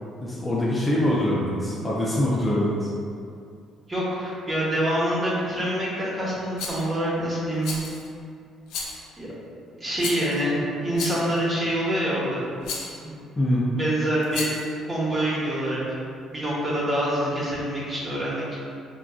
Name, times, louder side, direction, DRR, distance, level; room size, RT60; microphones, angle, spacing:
voice 1, 0.2-2.9 13.4-13.7, left 1 dB, 20° left, -6 dB, 0.5 m, -24 dB
voice 2, 3.9-7.8 9.2-9.3 9.8-12.4 12.9-13.2 13.7-14.5 14.9-15.8 16.3-18.5, right 1 dB, 25° right, -7 dB, 1.0 m, -26 dB
Rattle, 6.6-6.9 7.6-8.1 8.7-9.1 10.0-10.4 10.9-11.4 12.6-13.0 14.2-14.7, left 4 dB, 80° left, 0.5 m, -33 dB
3.8 x 2.4 x 2.3 m, 2.4 s
cardioid pair, 85°, 0 cm